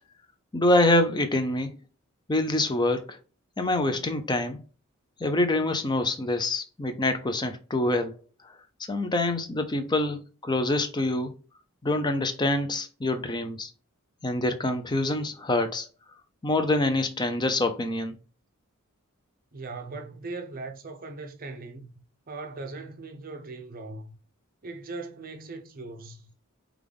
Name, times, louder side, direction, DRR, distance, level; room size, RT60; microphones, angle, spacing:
voice 1, 0.5-1.8 2.3-3.2 3.6-4.6 5.2-8.2 8.9-11.3 11.8-13.7 14.2-15.9 16.4-18.2, left 2 dB, 20° left, 0.5 m, -25 dB
voice 2, 19.5-21.9 22.3-24.1 24.6-26.3, right 3 dB, 40° right, 0.7 m, -39 dB
5.3 x 2.4 x 3.4 m
head